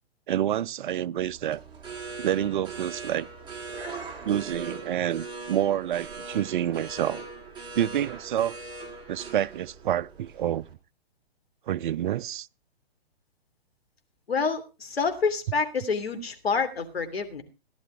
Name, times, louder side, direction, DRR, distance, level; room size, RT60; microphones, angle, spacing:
voice 1, 0.3-1.6 2.2-3.3 4.2-7.3 7.8-8.5 9.1-10.6 11.7-12.5, right 11 dB, 55° right, 0.6 m, -28 dB
sound 1, 1.1-10.7, right 4 dB, 15° right, 3.3 m, -41 dB
voice 2, 14.3-17.4, left 5 dB, 80° left, 3.0 m, -27 dB
16.0 x 11.5 x 3.4 m
hypercardioid pair, 130°, 30 cm